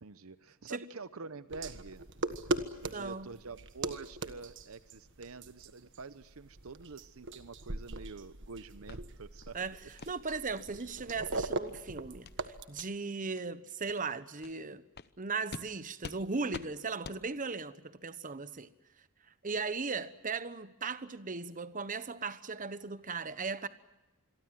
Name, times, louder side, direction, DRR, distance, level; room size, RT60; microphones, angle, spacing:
voice 1, 0.0-2.0 2.8-9.7, right 4 dB, 75° right, 0.9 m, -47 dB
sound 1, 1.5-12.6, right 2 dB, 60° right, 1.5 m, -40 dB
voice 2, 2.9-3.3 9.5-9.8 10.1-12.3 12.7-14.8 15.2-18.7 19.4-23.7, right 4 dB, 40° right, 1.1 m, -37 dB
sound 2, 8.9-9.0 9.4-9.6 10.0-10.1 10.5-10.7 11.1-11.2 11.6-11.8 12.2-12.4 12.7-12.9 13.3-13.4 13.9-14.0 14.4-14.5 14.9-15.1 15.5-15.7 16.0-16.2 16.5-16.7 17.0-17.2, left 4 dB, 50° left, 0.9 m, -46 dB
27.0 x 23.0 x 7.7 m
head